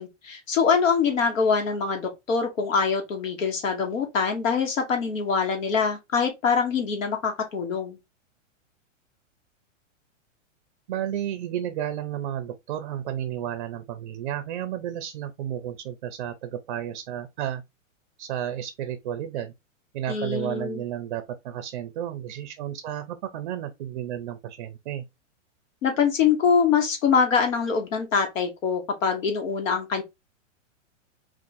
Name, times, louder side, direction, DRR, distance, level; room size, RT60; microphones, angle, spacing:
voice 1, 0.0-8.0 20.1-20.8 25.8-30.0, left 6 dB, 85° left, 1.3 m, -24 dB
voice 2, 10.9-17.6 18.2-19.5 19.9-25.0, right 10 dB, 40° right, 0.5 m, -32 dB
3.4 x 2.5 x 3.9 m
supercardioid pair, 160°, 38 cm